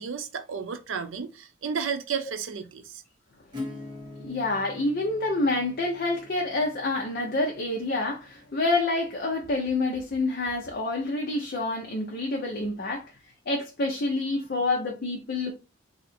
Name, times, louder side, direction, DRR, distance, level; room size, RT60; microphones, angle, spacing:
voice 1, 0.0-3.0, right 6 dB, 85° right, 0.6 m, -32 dB
Acoustic guitar / Strum, 3.5-9.0, left 2 dB, 25° right, 1.1 m, -44 dB
voice 2, 4.2-13.0 13.5-15.5, left 2 dB, 50° left, 0.6 m, -27 dB
2.8 x 2.5 x 4.2 m
head